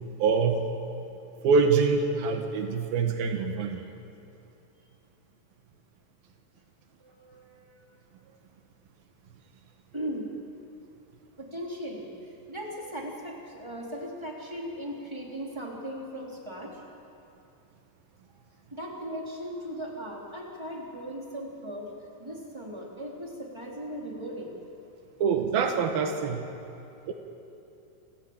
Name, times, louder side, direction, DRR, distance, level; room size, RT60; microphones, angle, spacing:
voice 1, 0.2-0.7 1.4-3.9 25.2-26.4 27.1-27.2, right 5 dB, 85° right, 4 dB, 3.2 m, -25 dB
voice 2, 7.0-7.8 9.9-10.3 11.4-16.8 18.7-21.9 22.2-24.5, equal, 10° right, -2 dB, 3.4 m, -38 dB
28.5 x 14.5 x 8.9 m, 2.7 s
omnidirectional pair, 4.1 m